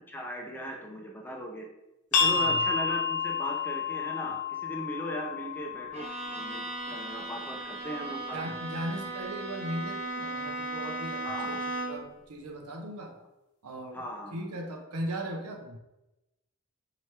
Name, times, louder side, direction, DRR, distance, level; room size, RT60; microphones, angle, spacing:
voice 1, 0.1-1.7 2.1-8.5 11.2-11.6 13.9-14.4, equal, 10° left, 0 dB, 0.5 m, -38 dB
sound 1, 2.1-7.5, left 5 dB, 90° left, 0.9 m, -30 dB
voice 2, 2.2-2.6 8.3-13.2 13.6-14.0 14.3-15.8, right 1 dB, 85° right, 2 dB, 0.7 m, -38 dB
Bowed string instrument, 5.9-12.1, right 2 dB, 30° right, 1.1 m, -36 dB
4.5 x 2.9 x 3.2 m, 0.95 s
head